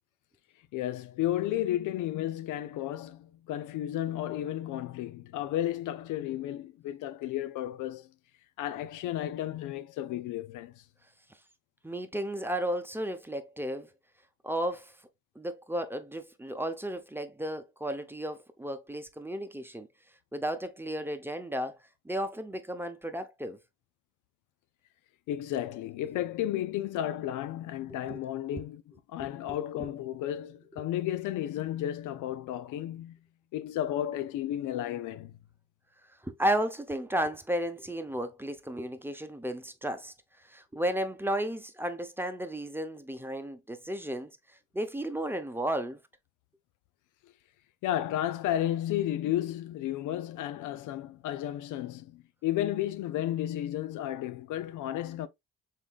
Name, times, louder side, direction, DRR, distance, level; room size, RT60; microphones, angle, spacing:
voice 1, 0.7-8.1 8.6-10.7 25.3-28.8 29.1-33.2 33.5-35.4 47.8-55.3, left 12 dB, 85° left, 0.5 m, -33 dB
voice 2, 11.8-13.9 14.4-15.0 15.3-19.9 20.3-21.8 22.0-23.6 28.1-28.2 29.2-29.9 36.2-46.0, right 1 dB, 5° right, 0.7 m, -34 dB
5.5 x 3.6 x 2.3 m
cardioid pair, 90°, 30 cm